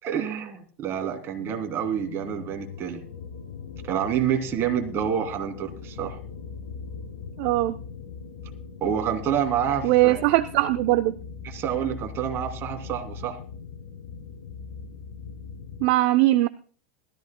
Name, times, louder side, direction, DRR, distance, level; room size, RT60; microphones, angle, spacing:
voice 1, 0.0-3.0 3.8-6.2 8.8-10.2 11.4-13.4, right 9 dB, 40° right, 5 dB, 3.0 m, -28 dB
sound 1, 1.0-15.9, left 5 dB, 75° left, 6.5 m, -40 dB
voice 2, 7.4-7.8 9.8-11.2 15.8-16.5, right 17 dB, 60° right, 12 dB, 0.7 m, -20 dB
20.5 x 14.0 x 2.2 m, 0.40 s
hypercardioid pair, 100°, 6 cm